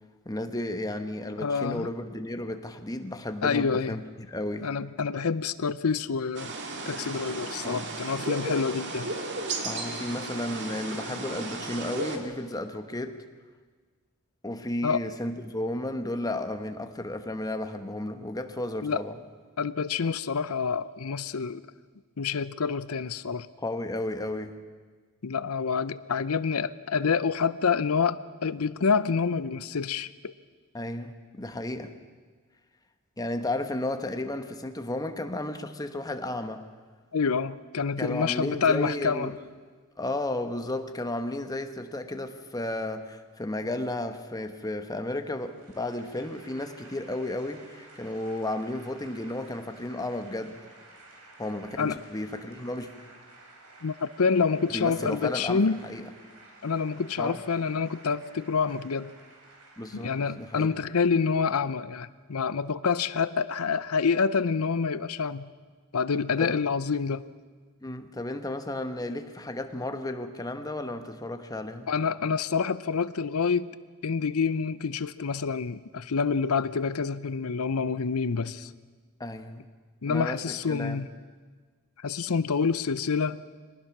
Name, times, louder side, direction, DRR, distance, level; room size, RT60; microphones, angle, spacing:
voice 1, 0.2-4.7 7.6-7.9 9.6-13.2 14.4-19.2 23.6-24.5 30.7-31.9 33.2-36.7 38.0-39.3 40.0-50.6 51.4-52.9 54.7-56.1 57.2-57.4 59.8-60.7 66.4-66.6 67.8-71.9 79.2-79.7 80.1-81.0, left 1 dB, 15° left, 7 dB, 1.1 m, -33 dB
voice 2, 1.4-1.9 3.4-4.0 4.6-6.5 6.9-9.1 14.8-15.0 18.8-19.0 19.6-21.6 22.2-23.5 25.2-30.3 37.1-39.3 51.8-52.0 53.8-55.8 56.6-59.1 59.9-65.5 65.9-67.3 71.9-73.8 74.0-78.7 80.0-81.1 82.0-83.4, left 5 dB, 80° left, 16 dB, 0.7 m, -27 dB
sound 1, 6.3-12.2, right 2 dB, 55° right, 2.1 m, -34 dB
sound 2, 45.1-61.1, right 2 dB, 85° right, 3.9 m, -53 dB
23.5 x 19.0 x 6.0 m, 1.5 s
head